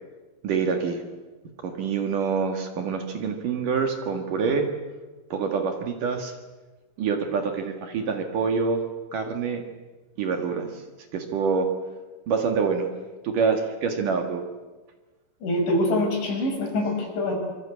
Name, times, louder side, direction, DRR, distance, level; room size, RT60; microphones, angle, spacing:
voice 1, 0.4-1.0 1.6-4.7 5.3-6.3 7.0-8.8 9.1-9.6 10.2-10.7 11.1-11.7 12.3-12.9 13.2-14.4, right 5 dB, 55° right, 5 dB, 3.0 m, -26 dB
voice 2, 15.4-17.3, left 1 dB, 85° left, 1 dB, 8.5 m, -24 dB
26.0 x 24.0 x 8.5 m, 1.2 s
omnidirectional pair, 5.2 m